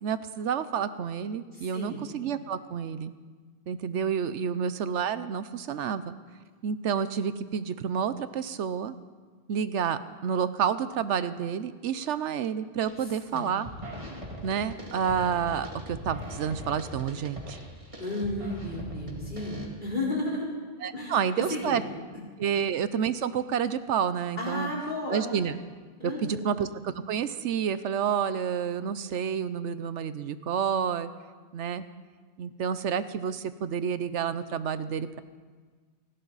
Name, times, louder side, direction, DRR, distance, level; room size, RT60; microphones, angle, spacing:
voice 1, 0.0-3.1 3.7-6.1 6.6-9.0 9.5-13.7 14.4-17.6 20.8-21.8 22.4-24.7 25.1-25.6 26.0-31.1 31.5-31.8 32.4-35.2, right 7 dB, 85° right, 13 dB, 1.0 m, -29 dB
voice 2, 1.5-2.0 13.3-13.6 18.0-20.5 20.9-21.8 24.4-25.2 26.0-26.5, left 1 dB, 45° left, -4 dB, 4.3 m, -33 dB
sound 1, 12.8-13.1 13.4-19.7, equal, 30° right, 2.4 m, -41 dB
29.5 x 12.0 x 4.0 m, 1.5 s
omnidirectional pair, 1.2 m